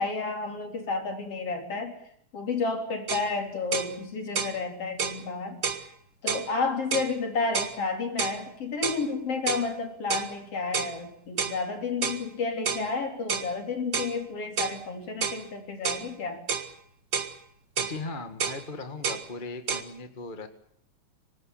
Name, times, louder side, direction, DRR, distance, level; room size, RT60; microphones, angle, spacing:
voice 1, 0.0-2.0 2.3-5.9 6.2-16.4, left 4 dB, 45° left, 4 dB, 4.6 m, -31 dB
sound 1, 3.1-3.3 3.7-3.9 4.3-4.6 5.0-5.2 5.6-5.8 6.3-6.5 6.9-7.1 7.5-7.8 8.2-8.4 8.8-9.0 9.5-9.7 10.1-10.3 10.7-10.9 11.4-11.6 12.0-12.2 12.6-12.9 13.3-13.5 13.9-14.1 14.6-14.8 15.2-15.4 15.8-16.1 16.5-16.7 17.1-17.3 17.8-18.0 18.4-18.6 19.0-19.2 19.7-19.8, right 6 dB, 40° right, 1.7 m, -29 dB
voice 2, 17.8-20.5, left 3 dB, 25° left, 8 dB, 1.2 m, -38 dB
25.5 x 19.0 x 8.7 m, 0.66 s
omnidirectional pair, 3.7 m